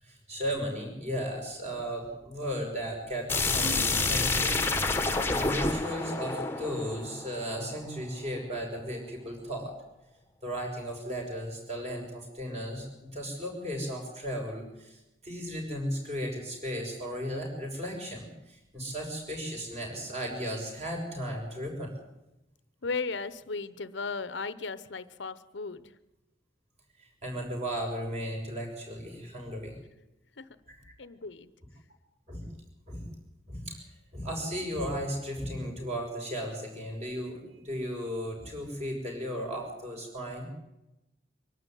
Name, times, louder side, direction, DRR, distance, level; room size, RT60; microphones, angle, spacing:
voice 1, 0.0-4.6 5.3-9.7 10.4-22.0 27.0-29.8 30.7-30.9 32.3-32.5 32.9-33.1 33.5-33.8 34.1-40.5, equal, 35° right, 1 dB, 6.2 m, -35 dB
sound 1, 3.3-8.0, left 3 dB, 10° left, 1.3 m, -29 dB
Acoustic guitar / Strum, 3.6-9.8 10.2-10.3, right 2 dB, 80° right, 2.9 m, -48 dB
voice 2, 22.8-25.9 30.4-30.5 31.0-31.5, left 4 dB, 80° left, 15 dB, 0.9 m, -36 dB
24.0 x 12.0 x 9.2 m, 0.95 s
head